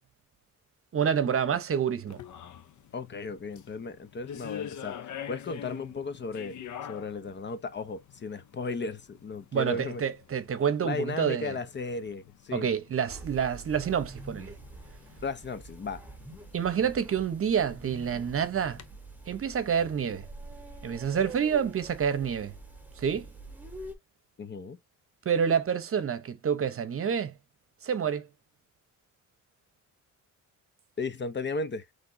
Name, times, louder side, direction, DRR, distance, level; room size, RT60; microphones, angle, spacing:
voice 1, 0.9-2.2 9.5-11.5 12.5-14.5 16.5-18.8 19.3-20.3 20.8-22.5 23.0-23.3 25.2-27.3 27.8-28.3, right 7 dB, 45° right, 0.9 m, -28 dB
sound 1, 2.1-18.9, left 9 dB, 65° left, 0.8 m, -47 dB
voice 2, 2.9-6.6 6.9-10.0 10.8-12.7 15.2-16.0 24.4-24.8 31.0-31.9, left 3 dB, 35° left, 0.8 m, -35 dB
sound 2, 13.1-23.9, right 2 dB, 5° right, 1.9 m, -46 dB
5.9 x 3.3 x 2.6 m
cardioid pair, 105°, 31 cm